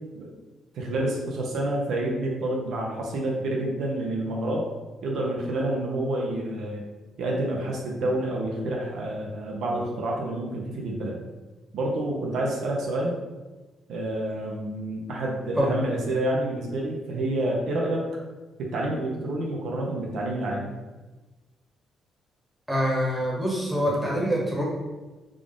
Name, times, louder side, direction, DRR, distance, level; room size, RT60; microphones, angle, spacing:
voice 1, 0.7-4.7 5.0-6.8 7.2-11.2 11.7-13.1 13.9-18.0 18.6-20.7, right 1 dB, 75° right, -1 dB, 0.7 m, -28 dB
voice 2, 22.7-24.6, equal, 5° right, -3 dB, 1.2 m, -25 dB
3.7 x 2.4 x 3.6 m, 1.2 s
cardioid pair, 90°, 0 cm